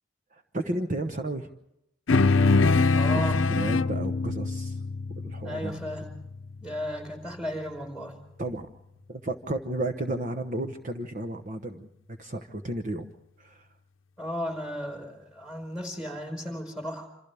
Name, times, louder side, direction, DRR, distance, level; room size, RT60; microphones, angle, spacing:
voice 1, 0.3-1.5 3.5-4.8 5.2-5.8 8.4-8.7 9.1-11.9 12.2-13.1 13.4-13.7, right 1 dB, 40° right, 7 dB, 1.0 m, -33 dB
sound 1, 2.1-6.8, left 3 dB, 85° left, 0.7 m, -24 dB
voice 2, 2.9-3.5 5.4-6.1 6.6-8.1 14.2-17.1, equal, 5° right, 5 dB, 4.7 m, -35 dB
27.5 x 27.5 x 3.5 m, 0.84 s
head